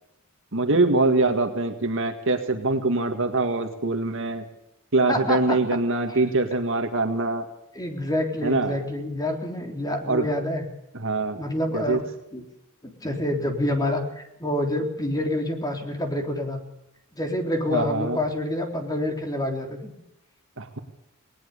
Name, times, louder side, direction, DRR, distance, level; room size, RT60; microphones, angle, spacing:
voice 1, 0.5-4.4 4.9-7.4 8.4-8.8 10.1-10.3 10.9-11.4 11.7-12.0 17.7-18.2 20.6-20.8, right 2 dB, 60° right, 5 dB, 2.0 m, -23 dB
voice 2, 5.1-5.6 6.1-6.2 7.7-10.6 11.3-12.0 12.3-12.4 13.0-16.6 17.1-19.9, left 1 dB, 15° left, 3 dB, 3.6 m, -27 dB
20.0 x 19.5 x 6.8 m, 0.84 s
head